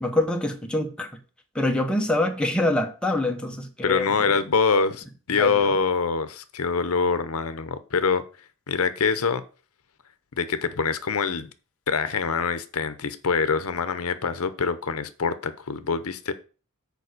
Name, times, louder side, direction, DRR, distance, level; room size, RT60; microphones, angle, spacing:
voice 1, 0.0-1.1 1.5-4.3 5.3-5.7, left 1 dB, 5° left, 1.0 m, -25 dB
voice 2, 3.8-8.2 8.7-9.4 10.4-11.5 11.9-16.3, left 5 dB, 75° left, 0.7 m, -25 dB
6.9 x 4.8 x 6.5 m
head